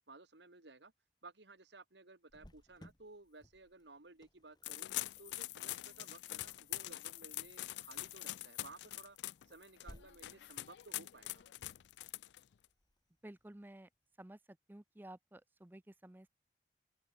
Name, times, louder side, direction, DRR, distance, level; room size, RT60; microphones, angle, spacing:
voice 1, 0.1-0.9 1.2-4.9 5.2-9.2 9.4-11.4, right 3 dB, 80° right, 2.3 m, -57 dB
Cricket, 2.3-13.8, equal, 25° left, 2.8 m, -64 dB
sound 1, 4.6-12.6, left 16 dB, 80° left, 0.3 m, -44 dB
voice 2, 13.2-13.9 14.2-14.4 14.7-16.3, right 1 dB, 10° right, 0.5 m, -53 dB
open air
head